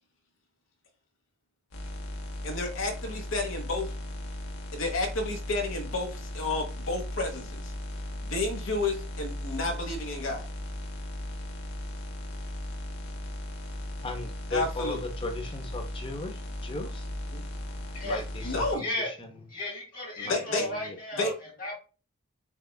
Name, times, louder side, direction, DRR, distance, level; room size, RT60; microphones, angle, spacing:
sound 1, 1.7-18.7, left 1 dB, 80° left, 1.1 m, -37 dB
voice 1, 2.4-3.9 4.7-7.7 8.2-10.5 14.5-15.0 17.3-17.4 18.4-18.8 20.2-20.7 21.1-21.3, left 2 dB, 60° left, 1.3 m, -31 dB
voice 2, 14.0-17.1 18.0-19.4 20.2-21.3, left 3 dB, 25° left, 0.7 m, -37 dB
voice 3, 17.9-18.5 18.8-19.1 19.5-21.3 21.6-21.8, left 1 dB, 40° left, 1.8 m, -34 dB
7.1 x 2.4 x 2.3 m
head